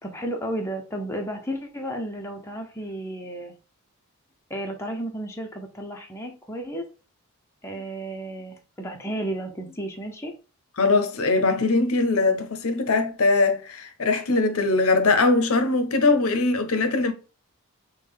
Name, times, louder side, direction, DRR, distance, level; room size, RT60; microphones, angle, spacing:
voice 1, 0.0-3.6 4.5-6.8 7.6-10.3, right 1 dB, 10° left, 0.5 m, -33 dB
voice 2, 10.8-17.1, left 3 dB, 65° left, 0.6 m, -21 dB
4.9 x 2.2 x 3.5 m
head